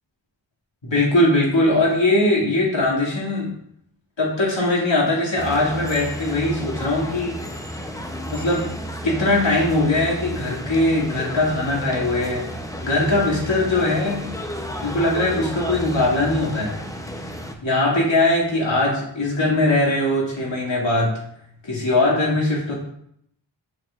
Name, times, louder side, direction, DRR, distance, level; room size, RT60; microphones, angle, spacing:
voice 1, 0.8-3.5 4.2-7.4 8.3-8.7 9.0-12.4 12.8-14.2 14.8-16.7 17.6-21.1 21.6-22.7, left 2 dB, 70° left, -4 dB, 2.3 m, -20 dB
sound 1, 5.4-17.5, equal, 5° left, 0.7 m, -32 dB
6.4 x 6.3 x 2.5 m, 0.70 s
wide cardioid pair, 70°, 46 cm